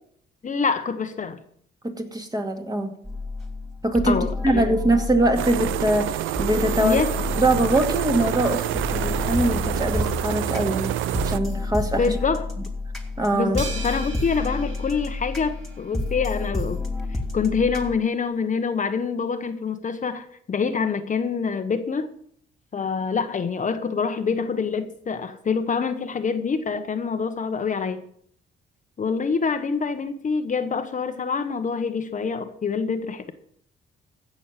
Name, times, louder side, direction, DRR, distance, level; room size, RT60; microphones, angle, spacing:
voice 1, 0.4-1.4 4.0-4.7 6.8-7.2 12.0-12.5 13.3-16.8 17.1-22.1 22.7-28.0 29.0-33.3, left 5 dB, 40° left, 1.1 m, -26 dB
voice 2, 1.8-2.9 3.8-4.2 4.4-7.0 7.4-10.9 11.2-12.0 13.2-13.6, right 1 dB, 20° right, 2.4 m, -23 dB
sound 1, 3.0-18.0, left 2 dB, ahead, 2.8 m, -30 dB
sound 2, 5.4-11.4, right 13 dB, 90° right, 0.6 m, -27 dB
sound 3, 13.6-16.1, right 4 dB, 70° right, 2.8 m, -39 dB
15.5 x 6.4 x 7.4 m
cardioid pair, 90°, 20 cm